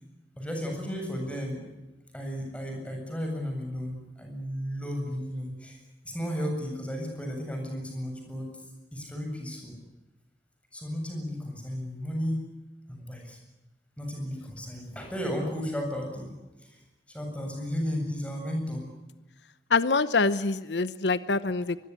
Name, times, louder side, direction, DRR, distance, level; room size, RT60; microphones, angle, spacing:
voice 1, 0.4-1.6 2.1-5.8 6.0-8.5 8.9-9.7 10.7-12.4 12.9-13.4 14.0-16.3 16.6-16.8 17.1-18.9, equal, 5° left, 2 dB, 7.8 m, -34 dB
voice 2, 19.7-21.8, left 4 dB, 85° left, 14 dB, 0.9 m, -25 dB
23.5 x 22.0 x 9.8 m, 1.1 s
head